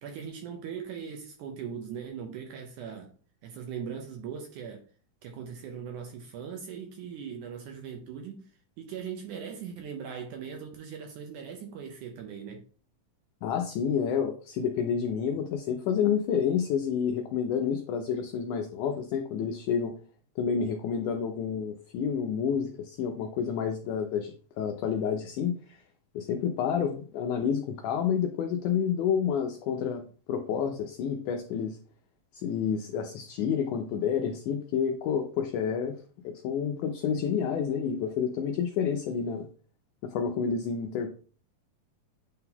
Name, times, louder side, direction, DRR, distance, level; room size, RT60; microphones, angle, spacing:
voice 1, 0.0-3.1 3.4-4.8 5.2-12.6, right 7 dB, 75° right, 1.9 m, -40 dB
voice 2, 13.4-19.9 20.4-25.8 26.2-30.0 30.3-31.8 32.4-36.0 36.2-39.5 40.0-41.1, left 7 dB, 85° left, 1.8 m, -29 dB
8.7 x 3.8 x 2.8 m
omnidirectional pair, 4.2 m